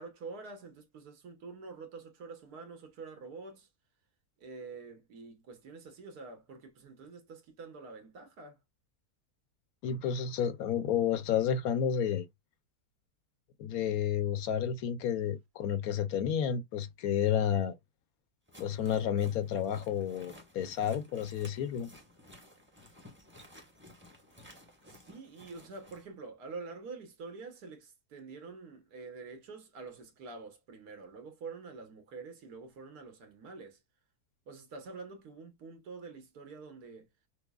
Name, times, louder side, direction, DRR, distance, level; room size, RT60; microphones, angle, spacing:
voice 1, 0.0-3.7 4.4-8.6 24.9-33.8 34.5-37.1, right 4 dB, 80° right, 1.6 m, -47 dB
voice 2, 9.8-12.3 13.6-17.8 18.6-21.9, left 8 dB, 70° left, 1.0 m, -31 dB
sound 1, 18.5-26.0, left 1 dB, 10° right, 0.9 m, -55 dB
5.8 x 2.0 x 2.2 m
omnidirectional pair, 1.6 m